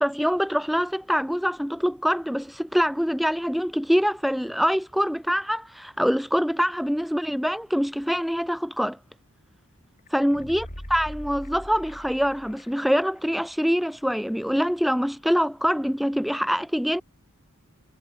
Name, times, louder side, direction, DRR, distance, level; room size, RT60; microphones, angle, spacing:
voice 1, 0.0-9.0 10.1-10.7 10.9-17.0, equal, ahead, 0.5 m, -24 dB
sound 1, 10.1-13.0 13.3-13.4, equal, 40° left, 4.8 m, -41 dB
head